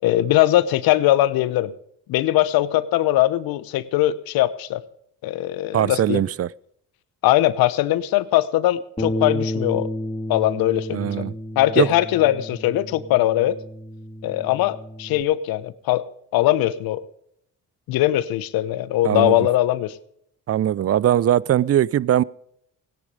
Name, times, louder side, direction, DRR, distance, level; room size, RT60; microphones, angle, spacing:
voice 1, 0.0-1.7 2.1-4.8 5.2-6.2 7.2-9.9 10.3-11.3 11.6-13.6 14.2-16.1 16.3-17.0 17.9-20.0, left 14 dB, 80° left, 17 dB, 0.9 m, -20 dB
voice 2, 5.7-6.5 10.9-11.3 11.8-11.9 19.0-19.4 20.5-22.2, right 11 dB, 45° right, 23 dB, 0.5 m, -20 dB
Bass guitar, 9.0-15.2, left 1 dB, 15° left, 2.5 m, -31 dB
17.5 x 10.5 x 5.2 m, 0.74 s
supercardioid pair, 60°, 35 cm